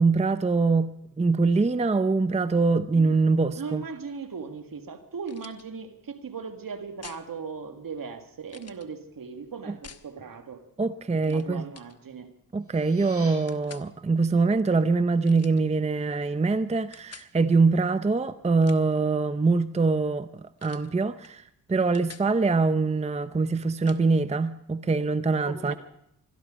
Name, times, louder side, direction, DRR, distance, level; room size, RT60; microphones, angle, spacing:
voice 1, 0.0-3.9 9.7-9.8 10.8-11.6 12.5-21.4 21.7-25.7, right 4 dB, 15° right, 0.6 m, -24 dB
voice 2, 3.6-10.6 11.2-12.3 25.5-25.8, right 5 dB, 60° right, 2.0 m, -38 dB
sound 1, 5.2-5.6 7.0-7.3 8.5-8.9 9.8-10.1 11.2-11.5 11.7-12.0 13.5-13.9 15.2-15.6 16.9-17.3 18.4-19.0 20.6-20.9 21.2-21.4 21.7-22.3 23.9-24.0, left 6 dB, 40° left, 1.0 m, -48 dB
sound 2, 12.5-13.3, right 2 dB, 40° right, 6.9 m, -46 dB
21.5 x 13.0 x 5.0 m
cardioid pair, 55°, 38 cm